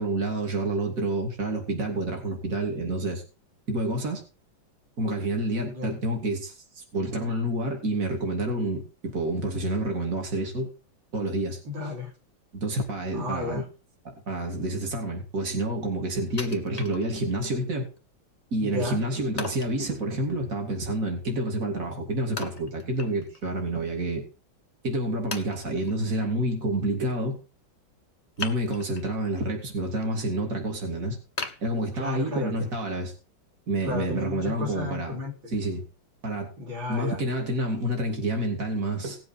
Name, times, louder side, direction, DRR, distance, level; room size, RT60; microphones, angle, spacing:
voice 1, 0.0-3.2 3.7-4.2 5.0-10.7 11.1-11.6 12.5-13.6 14.0-17.9 18.5-24.2 24.8-27.4 28.4-31.2 31.6-33.1 33.7-35.2 35.5-35.8 36.2-36.5 36.9-39.2, right 1 dB, 40° right, 2 dB, 3.2 m, -28 dB
voice 2, 11.6-12.1 13.1-13.7 18.6-19.0 31.9-32.7 33.8-35.5 36.6-37.2, left 3 dB, 75° right, -1 dB, 3.8 m, -33 dB
Wood, 16.4-17.5 18.0-18.1 19.4-19.8 22.4-23.5 23.8-23.9 24.6-24.7 25.3-26.0 28.4-29.1 29.6-30.1 30.5-30.6 31.4-32.4 32.9-33.0, left 3 dB, 20° left, 1.4 m, -37 dB
18.0 x 7.8 x 4.4 m, 0.32 s
omnidirectional pair, 2.2 m